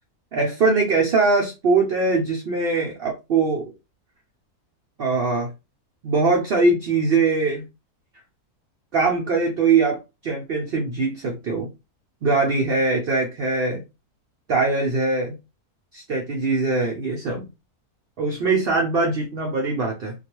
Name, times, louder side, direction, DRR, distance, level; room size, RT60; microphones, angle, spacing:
voice 1, 0.3-3.7 5.0-5.5 6.0-7.6 8.9-11.7 12.2-13.8 14.5-15.3 15.9-17.5 18.2-20.1, right 3 dB, 70° right, 1 dB, 0.5 m, -22 dB
2.3 x 2.3 x 2.9 m, 0.26 s
omnidirectional pair, 1.6 m